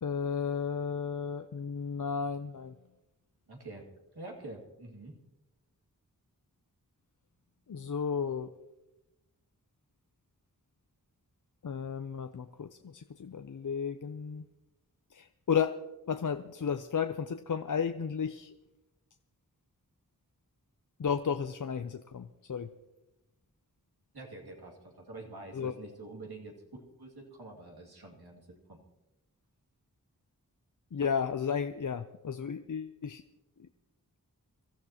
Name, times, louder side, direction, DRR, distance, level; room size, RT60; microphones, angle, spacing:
voice 1, 0.0-2.8 7.7-8.5 11.6-14.5 15.1-15.8 16.1-18.5 21.0-22.7 25.5-25.7 30.9-33.2 33.6-33.7, left 6 dB, 55° left, 9 dB, 0.6 m, -33 dB
voice 2, 3.5-3.8 4.1-5.2 24.1-26.6 27.0-28.8, right 2 dB, 90° right, -1 dB, 2.4 m, -46 dB
24.5 x 13.0 x 2.9 m, 1.0 s
wide cardioid pair, 55°, 37 cm